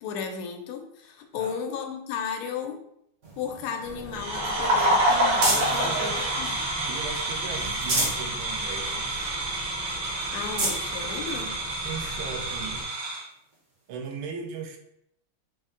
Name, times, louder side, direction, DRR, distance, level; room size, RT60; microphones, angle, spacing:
voice 1, 0.0-2.8 3.4-6.7 10.3-11.5, left 6 dB, 90° left, 5 dB, 1.5 m, -34 dB
sound 1, 3.2-5.9 6.4-7.2 7.6-8.3 8.7-8.8 9.2-9.3 9.9-10.0 10.3-10.8 11.6-11.7 13.5-13.6, right 2 dB, 50° right, 0.9 m, -30 dB
sound 2, 3.8-12.8, right 1 dB, 70° left, 0.3 m, -42 dB
sound 3, 4.1-13.2, right 1 dB, 65° right, 1.8 m, -28 dB
voice 2, 5.6-9.3 11.8-13.0 13.9-14.8, right 6 dB, 80° right, 4 dB, 1.4 m, -38 dB
4.0 x 2.1 x 3.6 m, 0.75 s
omnidirectional pair, 2.3 m